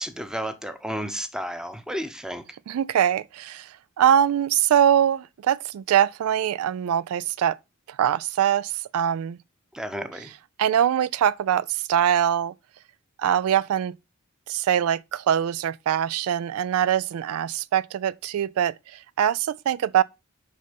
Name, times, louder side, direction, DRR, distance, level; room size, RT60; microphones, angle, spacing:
voice 1, 0.0-2.4 9.7-10.3, equal, 5° right, 0.8 m, -32 dB
voice 2, 2.7-7.6 7.9-9.4 10.6-12.5 13.2-13.9 14.5-20.0, right 9 dB, 75° right, 0.3 m, -23 dB
6.6 x 5.4 x 5.2 m
head